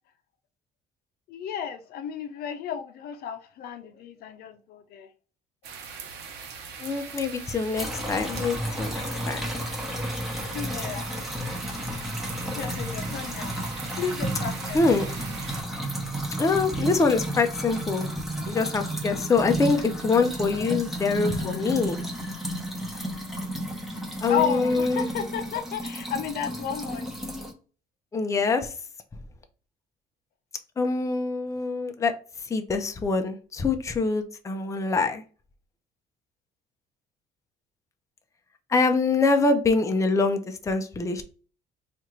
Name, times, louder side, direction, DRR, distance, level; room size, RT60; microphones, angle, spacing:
voice 1, 1.3-5.1 10.5-11.2 12.5-15.0 20.5-20.8 24.3-27.1, left 8 dB, 65° left, 0.6 m, -33 dB
sound 1, 5.6-15.6, right 5 dB, 80° right, 0.8 m, -41 dB
voice 2, 6.8-9.5 14.7-15.1 16.4-18.1 18.5-22.0 24.2-25.1 28.1-28.7 30.8-32.1 32.5-35.2 38.7-41.2, left 4 dB, 20° left, 0.5 m, -24 dB
sound 2, 7.8-27.5, right 1 dB, ahead, 1.0 m, -32 dB
4.2 x 2.5 x 3.0 m
cardioid pair, 110°, 17 cm